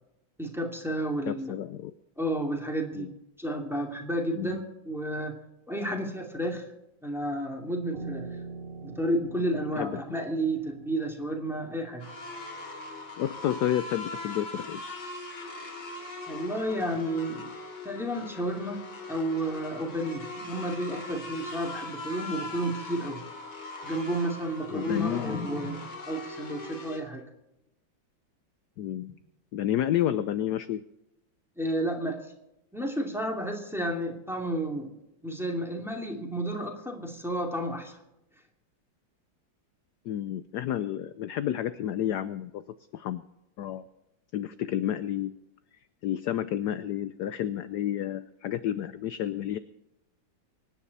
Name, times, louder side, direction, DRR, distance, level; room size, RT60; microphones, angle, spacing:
voice 1, 0.4-1.5 2.2-3.1 3.4-5.4 5.7-6.6 7.0-8.4 8.8-12.1 16.3-17.5 17.8-23.2 23.8-27.2 31.6-32.2 32.7-35.0 35.2-38.0, right 1 dB, ahead, 1 dB, 2.4 m, -31 dB
voice 2, 1.3-1.9 3.0-3.1 4.3-4.6 5.9-6.0 9.8-10.0 13.2-14.8 24.7-25.5 28.8-29.1 29.5-30.8 40.1-42.6 42.9-43.2 43.6-43.8 44.3-45.3 46.0-49.6, left 11 dB, 70° left, 12 dB, 1.0 m, -30 dB
Piano, 7.9-13.2, right 4 dB, 35° right, 1.5 m, -44 dB
sound 1, 12.0-27.0, left 2 dB, 90° left, 3.5 m, -40 dB
25.0 x 10.0 x 4.1 m, 0.88 s
omnidirectional pair, 2.2 m